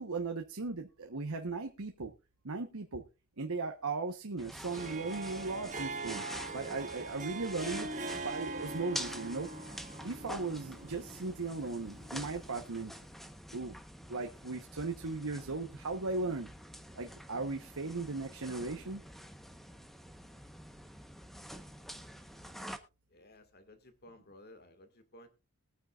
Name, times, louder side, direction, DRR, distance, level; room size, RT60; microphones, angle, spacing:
voice 1, 0.0-2.1 2.4-3.0 3.4-6.3 6.5-9.5 10.0-12.9 13.5-13.8 14.1-16.5 17.0-19.0, right 3 dB, 70° right, 4 dB, 1.1 m, -37 dB
sound 1, 4.4-22.8, equal, ahead, 1.0 m, -47 dB
Harp, 4.6-12.9, right 3 dB, 35° right, 1.1 m, -43 dB
voice 2, 23.1-25.3, left 1 dB, 45° left, 8 dB, 1.9 m, -56 dB
21.0 x 9.3 x 2.4 m, 0.28 s
head